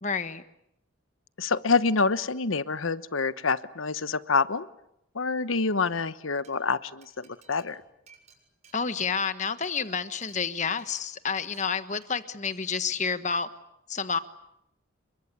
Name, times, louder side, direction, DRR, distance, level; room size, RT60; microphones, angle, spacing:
voice 1, 0.0-0.4 8.7-13.5 13.9-14.2, left 5 dB, 35° left, 11 dB, 1.3 m, -29 dB
voice 2, 1.4-4.7 5.1-7.8, left 4 dB, 80° left, 14 dB, 1.1 m, -27 dB
Glass, 6.4-6.5 7.0-9.3 9.6-9.8 10.2-10.4 10.8-11.0 11.4-11.6 12.0-12.2 12.5-12.8, right 6 dB, 35° right, 7.1 m, -57 dB
29.5 x 23.0 x 8.3 m, 0.80 s
head